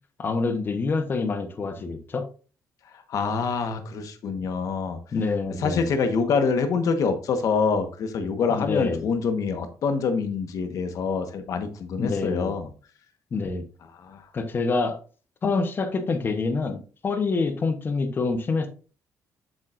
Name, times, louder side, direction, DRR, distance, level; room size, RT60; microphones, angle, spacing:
voice 1, 0.2-2.3 5.1-5.9 8.5-9.1 12.0-12.5 13.3-13.6 14.3-15.0 15.4-18.7, left 4 dB, 35° left, 8 dB, 0.9 m, -26 dB
voice 2, 3.1-5.0 5.6-12.7 14.0-14.2, left 5 dB, 60° left, 7 dB, 1.2 m, -25 dB
7.6 x 7.3 x 2.5 m, 0.38 s
cardioid pair, 150°, 7 cm